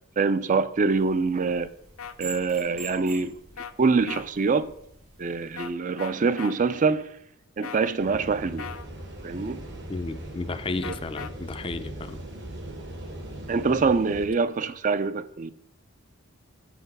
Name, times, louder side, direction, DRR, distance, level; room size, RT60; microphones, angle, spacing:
voice 1, 0.2-1.7 2.2-3.4 3.8-4.7 5.2-7.0 7.6-8.7 9.2-9.6 10.8-10.9 13.5-15.5, right 4 dB, 40° right, 0.4 m, -24 dB
sound 1, 0.9-5.7, right 4 dB, 75° right, 2.2 m, -45 dB
sound 2, 2.0-2.1 3.6-3.7 4.1-4.3 5.6-5.7 6.0-6.5 7.6-7.9 8.6-8.9 10.8-11.3, left 7 dB, 80° left, 0.6 m, -38 dB
sound 3, 8.0-14.3, right 1 dB, 55° right, 1.5 m, -40 dB
voice 2, 9.9-12.2, left 3 dB, 25° left, 0.4 m, -33 dB
7.1 x 5.8 x 5.3 m
head